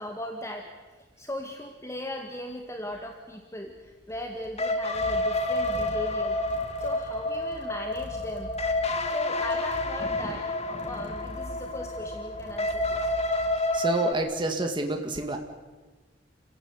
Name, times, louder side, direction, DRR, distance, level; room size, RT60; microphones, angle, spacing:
voice 1, 0.0-8.5 9.1-13.1, left 1 dB, 15° left, 2 dB, 1.9 m, -38 dB
sound 1, 3.6-14.2, equal, 65° left, 4.5 m, -45 dB
sound 2, 4.6-14.1, left 2 dB, 35° left, 1.9 m, -29 dB
voice 2, 13.7-15.4, right 2 dB, 25° right, 4 dB, 2.0 m, -28 dB
29.5 x 16.0 x 9.7 m, 1.3 s
head